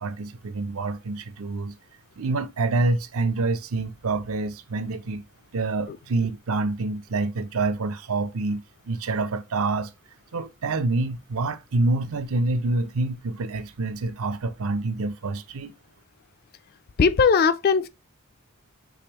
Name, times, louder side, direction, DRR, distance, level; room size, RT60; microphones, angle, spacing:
voice 1, 0.0-1.7 2.2-5.2 5.5-9.9 10.3-15.7, right 3 dB, 70° right, 0.5 m, -27 dB
voice 2, 17.0-17.9, left 5 dB, 45° left, 0.3 m, -19 dB
5.0 x 3.3 x 3.0 m
head